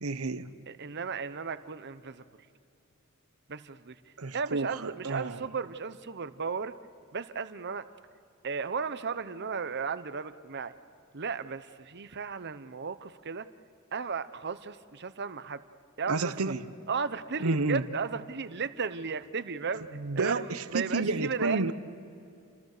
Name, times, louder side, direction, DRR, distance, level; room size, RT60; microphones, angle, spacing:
voice 1, 0.0-0.5 4.2-5.5 16.1-16.7 17.4-17.8 19.9-21.7, right 3 dB, 80° right, 12 dB, 1.0 m, -30 dB
voice 2, 0.7-2.2 3.5-4.0 4.3-6.7 7.1-7.9 8.4-10.7 11.1-13.5 13.9-15.6 16.0-16.5 16.9-19.9 20.1-21.7, right 5 dB, 55° right, 12 dB, 0.9 m, -35 dB
29.5 x 26.0 x 6.7 m, 2.7 s
head